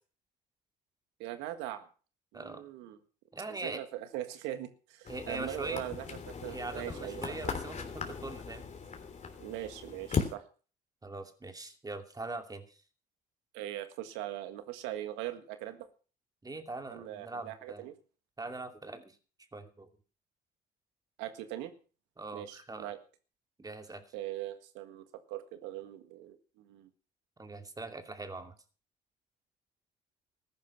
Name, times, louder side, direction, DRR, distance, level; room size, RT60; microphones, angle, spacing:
voice 1, 1.2-1.9 2.3-3.0 3.5-7.2 9.4-10.4 13.5-15.9 16.9-17.9 21.2-21.7 22.3-23.0 24.1-26.9, right 13 dB, 90° right, 10 dB, 1.7 m, -41 dB
voice 2, 3.3-3.8 5.1-5.8 6.5-8.6 11.0-12.8 16.4-17.9 18.4-19.2 19.5-19.9 22.2-22.9 23.6-24.0 27.4-28.5, right 2 dB, 20° right, 7 dB, 2.6 m, -42 dB
sound 1, 5.0-10.3, left 5 dB, 40° left, 3.4 m, -38 dB
14.5 x 11.0 x 5.9 m, 0.38 s
supercardioid pair, 75°, 18 cm